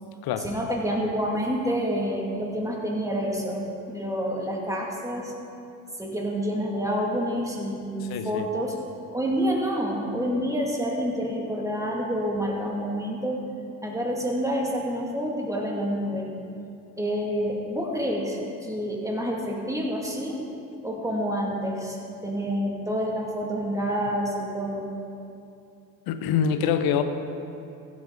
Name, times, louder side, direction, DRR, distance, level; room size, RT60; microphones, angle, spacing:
voice 1, 0.4-5.3 6.0-8.8 9.1-13.4 13.8-16.3 17.0-20.4 20.8-22.0 22.2-24.9, equal, 10° right, -1 dB, 2.3 m, -28 dB
voice 2, 8.0-8.5 26.1-27.0, left 8 dB, 60° left, 9 dB, 0.9 m, -25 dB
15.0 x 7.4 x 4.0 m, 2.6 s
hypercardioid pair, 65°, 42 cm